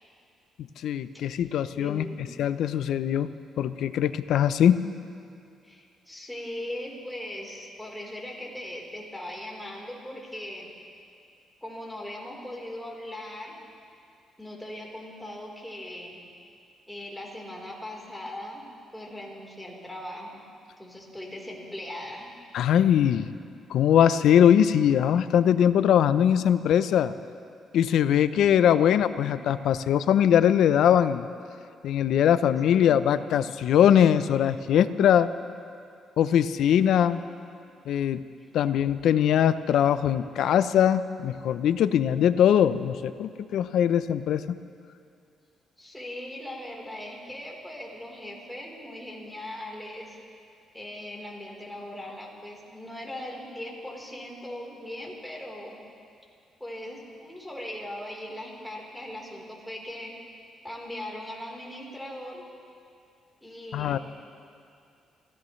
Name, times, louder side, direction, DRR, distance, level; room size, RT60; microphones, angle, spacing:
voice 1, 0.8-2.1 2.4-3.3 3.6-4.9 22.5-23.3 23.7-27.1 27.7-31.3 31.8-35.3 36.2-37.2 37.9-38.2 38.5-44.6 63.7-64.0, left 9 dB, 75° left, 13 dB, 0.6 m, -21 dB
voice 2, 1.7-2.4 5.6-10.7 11.6-13.5 14.4-16.2 16.9-18.7 18.9-20.4 20.8-22.3 32.7-33.4 37.6-37.7 45.8-50.2 50.7-55.8 56.6-60.1 60.6-62.5 63.4-64.0, left 1 dB, 5° left, -2 dB, 4.0 m, -39 dB
27.5 x 16.0 x 3.2 m, 2.4 s
cardioid pair, 90°, 0 cm